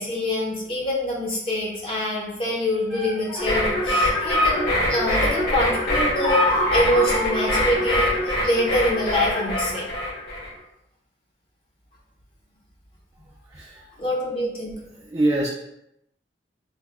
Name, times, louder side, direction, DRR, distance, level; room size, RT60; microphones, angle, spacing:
voice 1, 0.0-6.4 6.7-9.9 14.0-14.8, left 1 dB, 30° left, -4 dB, 0.7 m, -25 dB
sound 1, 2.4-8.1, equal, ahead, 0.7 m, -40 dB
sound 2, 3.4-10.5, left 1 dB, 65° left, 1.4 m, -23 dB
voice 2, 13.5-13.9 14.9-15.5, right 1 dB, 20° right, -3 dB, 0.3 m, -24 dB
3.3 x 2.1 x 3.5 m, 0.82 s
head